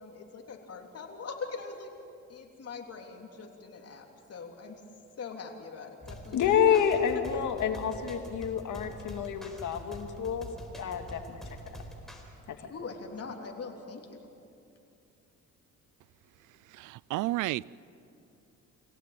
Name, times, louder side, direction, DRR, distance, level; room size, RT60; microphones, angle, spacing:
voice 1, 0.0-1.9 2.3-4.8 5.2-6.9 7.1-7.2 12.7-14.2, left 4 dB, 55° left, 3.4 m, -42 dB
sound 1, 6.0-12.2, equal, ahead, 4.2 m, -45 dB
voice 2, 6.3-10.5 10.8-11.4 12.5-12.7, left 8 dB, 75° left, 2.3 m, -28 dB
voice 3, 16.7-17.6, right 18 dB, 85° right, 0.5 m, -31 dB
26.5 x 17.0 x 9.1 m
cardioid pair, 90°, 30 cm